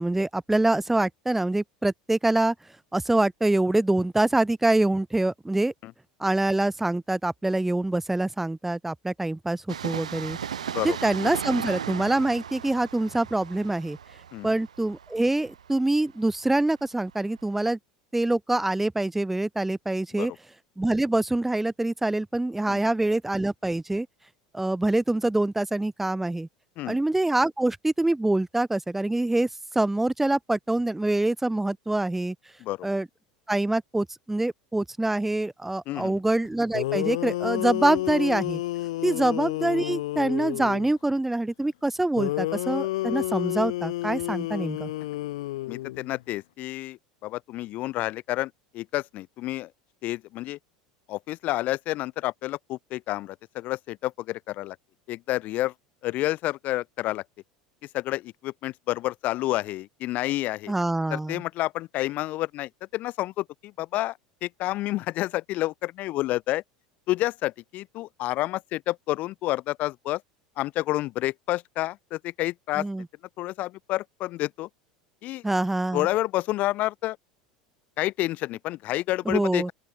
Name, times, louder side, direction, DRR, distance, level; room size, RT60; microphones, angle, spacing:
voice 1, 0.0-2.5 2.9-5.7 6.2-10.4 10.8-14.0 14.4-17.8 18.1-20.3 20.8-24.1 24.5-26.5 26.9-29.5 29.7-32.4 32.8-33.1 33.5-38.6 39.0-44.9 60.7-61.4 72.8-73.1 75.4-76.1 79.3-79.7, right 2 dB, 5° right, 0.5 m, -25 dB
Train, 9.7-17.1 17.4-17.5, right 8 dB, 80° right, 2.1 m, -36 dB
voice 2, 35.9-36.2 45.7-49.7 50.0-50.6 51.1-54.8 55.1-55.7 56.0-57.2 57.9-60.7 61.1-66.6 67.1-70.2 70.6-72.9 73.4-74.7 75.2-75.4 75.9-77.2 78.0-79.7, left 17 dB, 50° left, 1.1 m, -29 dB
sound 1, 36.4-36.5 36.7-40.9 42.2-46.2, left 16 dB, 65° left, 2.7 m, -30 dB
open air
figure-of-eight pair, 75°, 4 cm